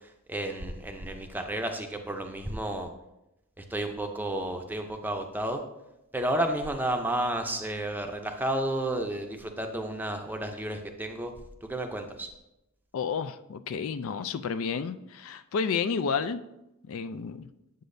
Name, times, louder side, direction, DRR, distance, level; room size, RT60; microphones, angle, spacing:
voice 1, 0.3-2.9 3.6-5.6 6.1-11.3 11.6-12.3, right 1 dB, 10° right, 4 dB, 0.5 m, -31 dB
voice 2, 12.9-16.4 16.9-17.5, left 5 dB, 65° left, 12 dB, 0.3 m, -31 dB
8.3 x 7.7 x 2.6 m, 0.90 s
head